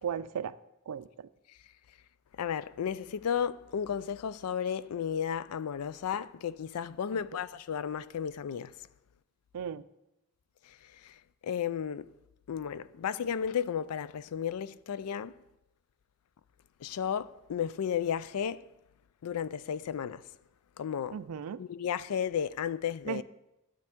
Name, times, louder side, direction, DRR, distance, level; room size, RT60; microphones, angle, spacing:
voice 1, 0.0-0.6 0.9-1.3 7.1-7.2 9.5-9.8 21.1-21.6 23.1-23.2, right 8 dB, 85° right, 0.4 m, -36 dB
voice 2, 2.4-8.7 11.0-11.1 11.4-12.1 12.5-15.3 16.8-18.6 19.2-20.2 20.8-21.2 21.6-23.2, left 8 dB, 80° left, 0.4 m, -33 dB
11.5 x 8.5 x 3.6 m
head